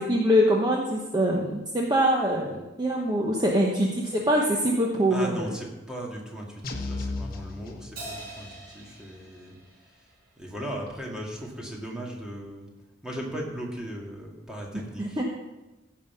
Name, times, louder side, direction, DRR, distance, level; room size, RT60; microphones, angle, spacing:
voice 1, 0.0-5.5 15.0-15.2, equal, 20° right, -2 dB, 1.0 m, -24 dB
voice 2, 5.1-12.7 13.0-15.2, right 1 dB, 5° right, -2 dB, 2.0 m, -38 dB
sound 1, 6.6-8.5, left 3 dB, 50° left, 1.1 m, -35 dB
Crash cymbal, 8.0-10.6, right 2 dB, 55° right, 3.6 m, -44 dB
15.0 x 5.6 x 5.6 m, 1.1 s
head